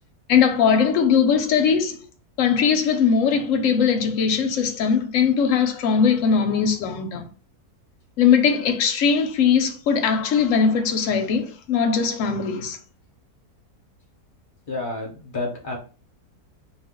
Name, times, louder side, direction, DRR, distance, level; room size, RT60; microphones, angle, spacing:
voice 1, 0.3-2.1 2.4-7.2 8.2-12.8, left 6 dB, 65° left, 0.9 m, -20 dB
voice 2, 14.7-15.8, left 2 dB, 40° left, 0.8 m, -29 dB
2.5 x 2.4 x 3.6 m
omnidirectional pair, 1.7 m